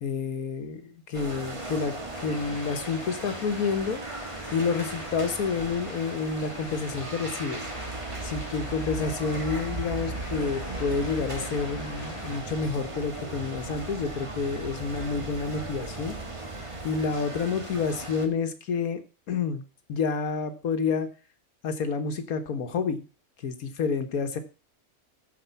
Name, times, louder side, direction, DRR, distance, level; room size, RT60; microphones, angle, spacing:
voice 1, 0.0-4.0 4.5-7.6 8.2-16.2 16.8-19.6 19.9-21.1 21.6-23.0 23.4-24.4, left 5 dB, 85° left, 9 dB, 1.7 m, -29 dB
sound 1, 1.1-18.3, right 2 dB, 25° right, 1.5 m, -37 dB
sound 2, 2.1-12.4, left 2 dB, 10° left, 4.7 m, -44 dB
14.0 x 4.9 x 5.5 m, 0.34 s
omnidirectional pair, 1.5 m